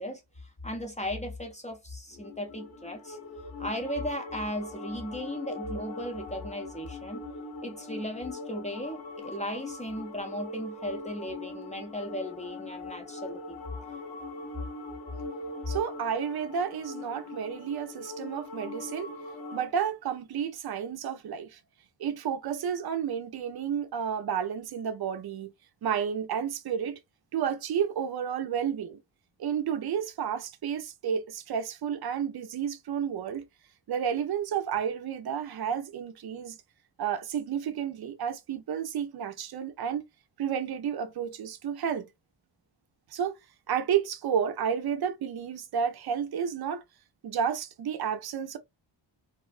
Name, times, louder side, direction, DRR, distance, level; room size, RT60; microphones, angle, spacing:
voice 1, 0.0-3.2 3.6-7.2 7.6-13.6, equal, 15° left, 0.5 m, -36 dB
sound 1, 2.1-19.7, left 2 dB, 80° left, 0.9 m, -41 dB
voice 2, 15.7-19.1 19.5-21.6 22.0-25.5 25.8-27.0 27.3-29.0 29.4-33.5 33.9-36.6 37.0-40.0 40.4-42.1 43.1-43.4 43.7-46.8 47.2-48.6, right 8 dB, 55° right, 0.6 m, -31 dB
2.5 x 2.1 x 2.4 m
cardioid pair, 75°, 47 cm